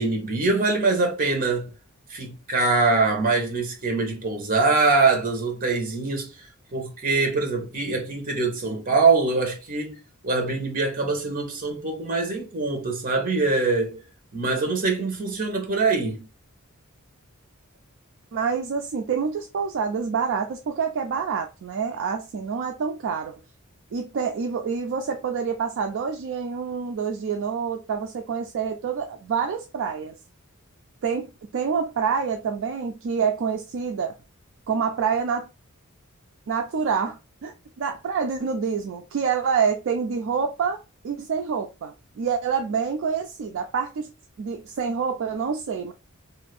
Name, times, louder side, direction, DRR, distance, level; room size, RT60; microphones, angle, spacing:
voice 1, 0.0-1.7 2.1-6.3 6.7-10.0 10.2-14.0 14.3-16.2, right 3 dB, 40° right, 0.9 m, -23 dB
voice 2, 18.3-23.3 23.9-30.2 31.0-34.1 34.7-35.5 36.5-44.1 44.4-45.9, right 6 dB, 60° right, 0.4 m, -27 dB
2.6 x 2.5 x 3.3 m
head